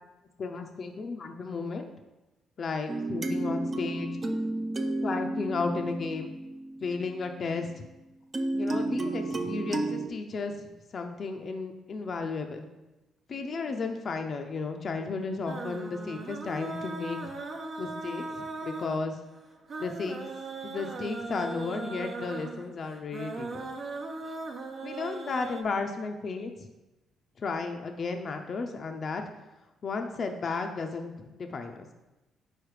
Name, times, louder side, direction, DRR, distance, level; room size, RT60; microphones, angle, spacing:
voice 1, 0.4-1.9 2.6-4.1 5.0-6.3 6.8-7.9 8.5-10.5 10.9-12.6 13.3-17.3 17.8-18.3 18.6-19.2 19.8-20.2 20.6-23.7 24.3-24.4 24.8-26.5 27.4-29.2 29.8-31.9, left 4 dB, 50° left, 5 dB, 0.5 m, -33 dB
sound 1, 2.9-7.2 8.3-10.1, right 2 dB, 35° right, 0.5 m, -32 dB
sound 2, 15.5-25.6, right 3 dB, 55° right, 0.9 m, -39 dB
4.8 x 4.3 x 4.8 m, 1.0 s
cardioid pair, 90°, 0 cm